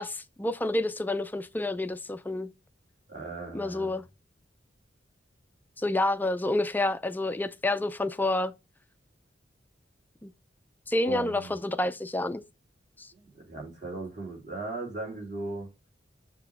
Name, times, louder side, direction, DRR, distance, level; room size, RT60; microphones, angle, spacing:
voice 1, 0.0-2.5 3.5-4.0 5.8-8.5 10.2-10.3 10.9-12.4 13.0-13.1, left 2 dB, 10° left, 0.4 m, -29 dB
voice 2, 3.1-3.9 11.0-11.5 13.1-15.7, right 2 dB, 40° right, 3.0 m, -38 dB
7.1 x 2.9 x 5.9 m
head